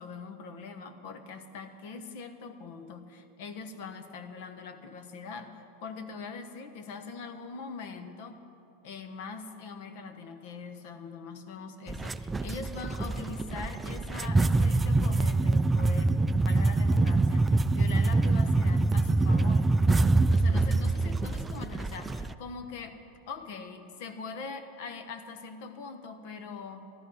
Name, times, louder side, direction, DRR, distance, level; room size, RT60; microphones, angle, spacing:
voice 1, 0.0-8.5 8.8-19.8 20.3-23.0 23.3-26.9, left 4 dB, 65° left, 9 dB, 1.2 m, -42 dB
sound 1, 11.9-22.3, right 2 dB, 10° right, 0.3 m, -25 dB
13.0 x 12.5 x 5.7 m, 2.7 s
supercardioid pair, 130°, 0 cm